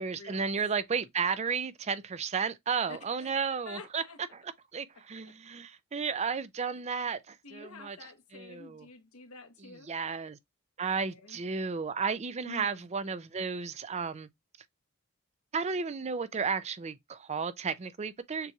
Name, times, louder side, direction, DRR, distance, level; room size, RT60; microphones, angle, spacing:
voice 1, 0.0-4.0 4.3-8.0 8.3-8.9 9.9-10.4 10.8-14.3 15.5-18.5, right 5 dB, 30° right, 0.4 m, -33 dB
voice 2, 2.9-3.3 3.6-4.2 5.3-5.4 7.4-9.9 11.1-11.4 12.4-12.9, left 3 dB, 75° left, 1.0 m, -48 dB
6.7 x 3.0 x 2.3 m
head